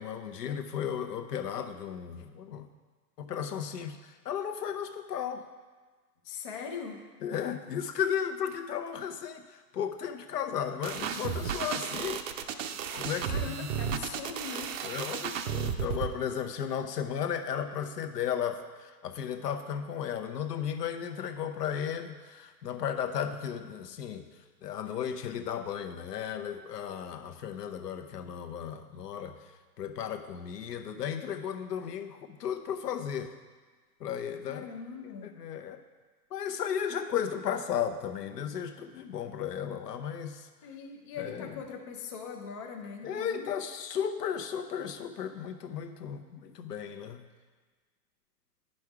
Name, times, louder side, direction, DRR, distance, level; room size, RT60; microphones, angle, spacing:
voice 1, 0.0-2.7 3.2-5.4 7.2-12.7 12.9-14.0 14.8-24.3 24.6-29.4 29.8-33.3 34.0-34.7 35.2-35.8 36.3-40.5 41.2-41.6 43.0-47.2, left 8 dB, 75° left, 7 dB, 1.0 m, -35 dB
voice 2, 6.2-7.0 13.3-14.7 34.5-35.4 40.6-43.5, left 5 dB, 25° left, 2 dB, 0.3 m, -41 dB
sound 1, 10.8-16.1, right 8 dB, 55° right, 0.7 m, -33 dB
9.9 x 5.4 x 4.8 m, 1.4 s
hypercardioid pair, 130°, 49 cm